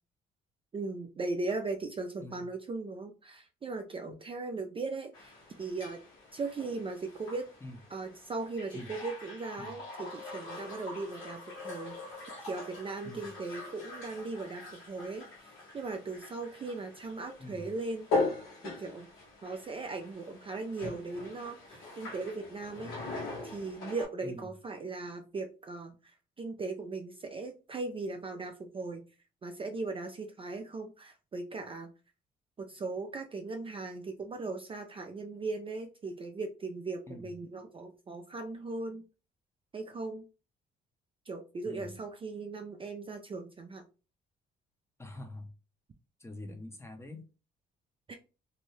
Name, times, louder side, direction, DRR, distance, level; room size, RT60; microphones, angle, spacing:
voice 1, 0.7-5.3 5.6-6.0 6.3-7.5 7.9-18.1 18.6-19.1 19.4-29.0 29.4-31.9 32.6-39.0 39.7-40.2 41.3-43.8 48.1-48.2, right 3 dB, 25° right, 4 dB, 0.4 m, -38 dB
sound 1, 5.1-24.0, left 3 dB, 85° left, 1.2 m, -41 dB
voice 2, 41.6-42.0 45.0-45.5 46.2-47.3, left 2 dB, 15° left, 5 dB, 0.6 m, -45 dB
2.7 x 2.1 x 3.1 m, 0.33 s
cardioid pair, 90°, 20 cm